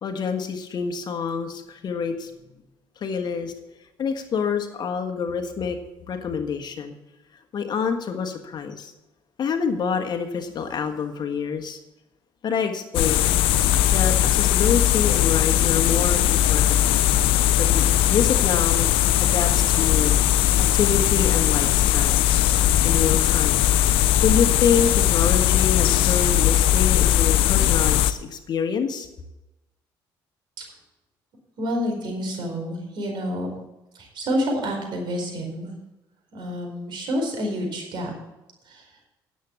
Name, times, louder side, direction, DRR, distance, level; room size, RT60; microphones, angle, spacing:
voice 1, 0.0-2.3 3.0-3.5 4.0-6.9 7.5-8.9 9.4-11.8 12.4-13.3 13.9-16.8 17.6-18.9 19.2-20.2 20.6-22.3 22.8-23.6 24.2-29.1, left 6 dB, 50° left, 6 dB, 1.5 m, -27 dB
sound 1, 12.9-28.1, left 12 dB, 80° left, 0.6 m, -19 dB
voice 2, 31.6-33.5 33.9-35.7 36.3-38.1 38.6-38.9, equal, 60° right, 1 dB, 4.5 m, -28 dB
10.0 x 7.7 x 6.9 m, 0.98 s
supercardioid pair, 80°, 9 cm